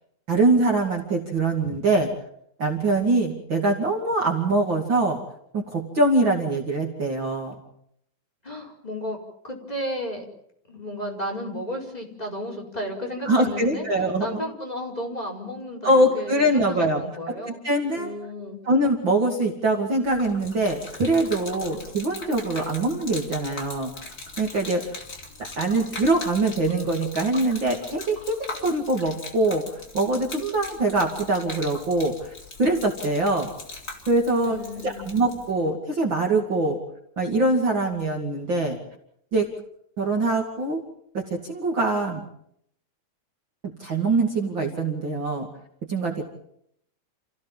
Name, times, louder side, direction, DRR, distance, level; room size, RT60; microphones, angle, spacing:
voice 1, 0.3-2.1 2.6-5.2 5.5-7.5 13.3-14.4 15.8-17.0 17.3-17.4 17.6-18.1 18.7-23.9 24.4-24.8 25.4-32.3 32.6-33.5 34.1-34.6 34.8-36.8 37.2-38.8 39.3-39.5 40.0-40.8 41.1-42.2 43.8-45.5 45.9-46.3, right 2 dB, 40° right, 1 dB, 3.0 m, -23 dB
voice 2, 8.4-10.2 10.7-13.9 14.2-17.6 17.9-18.6 34.4-35.1, equal, 10° left, 0 dB, 4.9 m, -33 dB
Gurgling / Liquid, 20.0-35.5, left 3 dB, 30° left, 4.2 m, -40 dB
29.5 x 16.0 x 7.4 m, 0.72 s
omnidirectional pair, 3.4 m